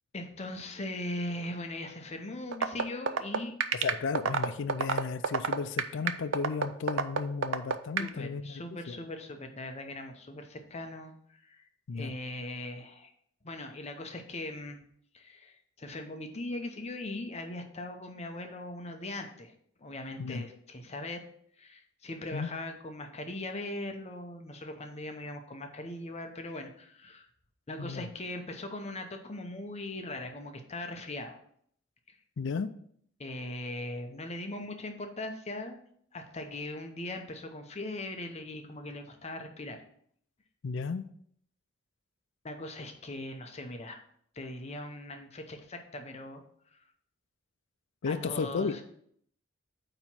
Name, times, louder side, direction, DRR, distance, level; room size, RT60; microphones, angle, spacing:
voice 1, 0.1-3.5 8.0-11.6 11.9-13.1 13.4-14.8 15.1-19.5 19.8-21.2 21.6-27.3 27.7-31.4 32.1-32.2 33.2-35.8 36.1-39.8 42.4-44.0 44.3-46.4 46.7-46.8 48.1-48.8, left 1 dB, 30° left, 5 dB, 0.7 m, -40 dB
sound 1, 2.5-8.1, right 6 dB, 65° right, 0.5 m, -27 dB
voice 2, 3.8-8.6 8.9-9.0 11.9-12.1 20.2-20.4 22.3-22.5 27.8-28.1 32.4-32.7 40.6-41.1 48.0-48.8, left 5 dB, 65° left, 10 dB, 0.4 m, -34 dB
8.9 x 3.0 x 5.6 m, 0.65 s
head